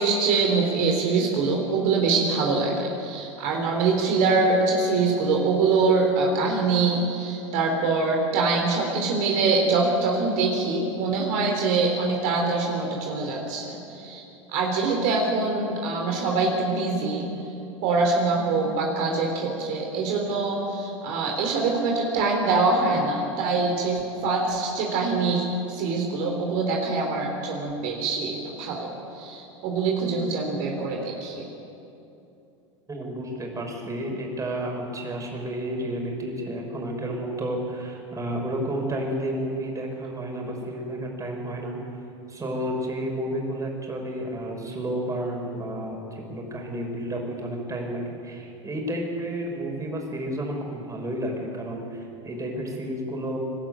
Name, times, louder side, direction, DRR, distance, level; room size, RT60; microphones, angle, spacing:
voice 1, 0.0-14.2 14.5-17.3 17.8-31.5, right 3 dB, 60° right, 1 dB, 3.8 m, -24 dB
voice 2, 32.9-41.8 42.3-53.4, right 1 dB, 20° right, 1 dB, 5.9 m, -31 dB
25.5 x 12.5 x 9.2 m, 2.8 s
hypercardioid pair, 90°, 16 cm